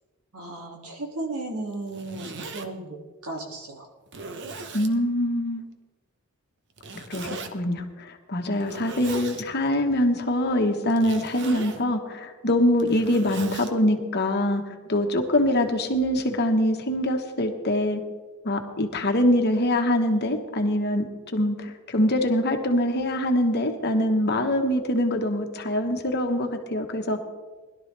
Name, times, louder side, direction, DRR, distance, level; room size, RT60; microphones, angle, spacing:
voice 1, 0.3-3.0 3.2-3.9, right 2 dB, 85° right, 0 dB, 2.5 m, -35 dB
Zipper (clothing), 1.7-2.7 3.4-3.5 4.1-4.9 6.8-7.5 8.5-9.4 10.9-11.8 12.6-13.7, right 3 dB, 55° right, 1.0 m, -38 dB
voice 2, 4.7-5.7 6.9-18.0 18.4-21.0 21.3-27.2, left 1 dB, 50° left, 5 dB, 1.3 m, -24 dB
20.5 x 12.0 x 3.4 m, 1.3 s
head